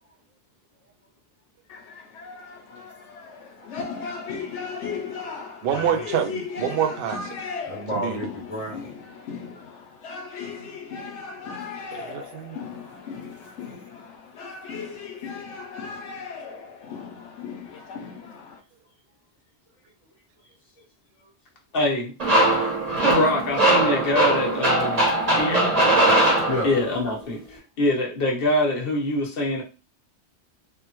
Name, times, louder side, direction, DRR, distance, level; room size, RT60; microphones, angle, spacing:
sound 1, 1.7-18.6, left 5 dB, 80° left, 0.9 m, -36 dB
voice 1, 3.6-4.8 5.2-6.1 7.6-8.9 9.4-9.6 12.9-13.0 26.5-26.7, equal, 30° left, -3 dB, 1.1 m, -34 dB
voice 2, 5.6-7.4 7.9-8.2 8.7-8.8 11.9-12.6, right 9 dB, 65° right, 7 dB, 0.7 m, -27 dB
voice 3, 21.7-22.1 23.0-25.0 25.3-25.8 26.6-29.6, left 2 dB, 55° left, 0 dB, 1.1 m, -24 dB
sound 2, 22.2-27.0, right 1 dB, 35° right, 0.9 m, -20 dB
3.4 x 2.1 x 2.9 m, 0.32 s
omnidirectional pair, 1.2 m